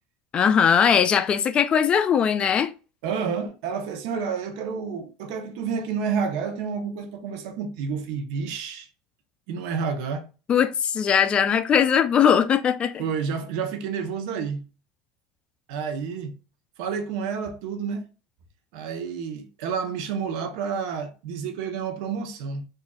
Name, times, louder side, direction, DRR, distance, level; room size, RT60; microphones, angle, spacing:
voice 1, 0.3-2.7 10.5-13.0, left 7 dB, 35° left, 0.4 m, -20 dB
voice 2, 3.0-8.9 9.5-10.3 13.0-14.7 15.7-16.3 16.8-18.1 18.7-22.6, right 6 dB, 70° right, 0.8 m, -29 dB
4.0 x 2.5 x 2.3 m
supercardioid pair, 105°, 3 cm